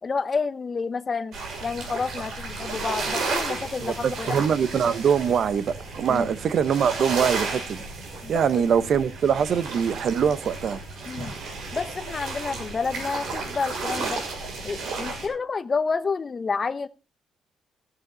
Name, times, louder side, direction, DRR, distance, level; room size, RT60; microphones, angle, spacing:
voice 1, 0.0-4.4 6.1-6.3 8.2-8.4 11.1-11.3 11.7-14.2 14.6-16.9, left 4 dB, 35° left, 0.8 m, -29 dB
sound 1, 1.3-15.3, right 3 dB, 75° right, 6.2 m, -33 dB
voice 2, 3.8-7.8 8.3-10.8, right 7 dB, 60° right, 0.9 m, -23 dB
14.0 x 11.5 x 4.0 m
cardioid pair, 90°, 0 cm